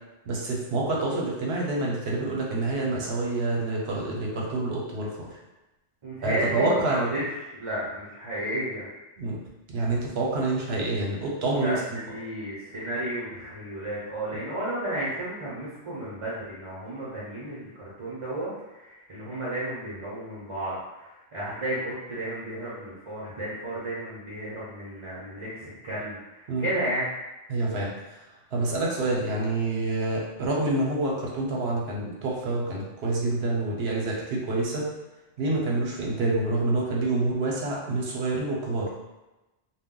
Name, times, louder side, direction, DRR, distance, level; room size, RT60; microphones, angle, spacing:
voice 1, 0.3-5.3 6.2-7.2 9.2-9.4 9.7-11.8 26.5-26.7 27.5-28.2 28.5-34.8 35.4-38.9, right 2 dB, 75° right, -2 dB, 0.9 m, -27 dB
voice 2, 6.0-7.2 7.5-8.9 11.6-27.1, right 1 dB, 35° right, -8 dB, 0.6 m, -33 dB
2.2 x 2.1 x 3.6 m, 1.0 s
omnidirectional pair, 1.1 m